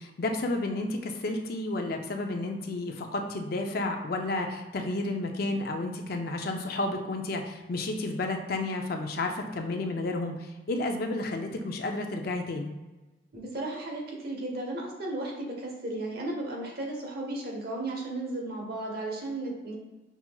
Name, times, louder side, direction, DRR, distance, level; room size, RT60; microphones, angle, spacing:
voice 1, 0.0-12.7, left 2 dB, 55° left, 4 dB, 0.5 m, -31 dB
voice 2, 13.3-19.7, right 2 dB, 55° right, -1 dB, 1.0 m, -34 dB
5.7 x 2.8 x 2.3 m, 1.1 s
head